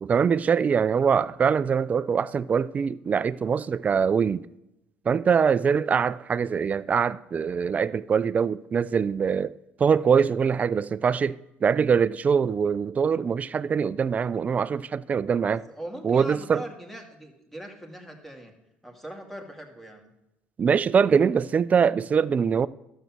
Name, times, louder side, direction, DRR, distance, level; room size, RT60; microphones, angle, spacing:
voice 1, 0.0-4.4 5.1-9.5 9.8-15.7 16.0-16.6 20.6-22.7, right 6 dB, 35° right, 0.4 m, -23 dB
voice 2, 15.5-18.5 18.8-20.1, right 1 dB, 5° left, 2.2 m, -41 dB
12.0 x 7.5 x 6.0 m
supercardioid pair, 90°, 4 cm